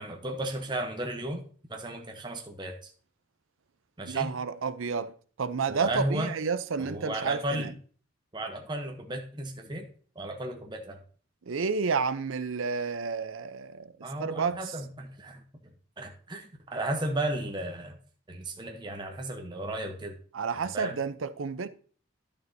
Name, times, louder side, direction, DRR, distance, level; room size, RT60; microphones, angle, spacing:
voice 1, 0.0-1.4 1.7-2.9 4.0-4.3 5.7-6.3 6.8-7.7 8.3-9.9 10.1-11.0 14.0-15.4 16.0-18.0 18.3-20.2 20.7-21.0, right 1 dB, 20° right, 0.9 m, -34 dB
voice 2, 4.0-7.7 11.5-13.9 14.2-14.6 20.3-21.7, right 5 dB, 85° right, 0.6 m, -30 dB
11.0 x 6.7 x 2.7 m
head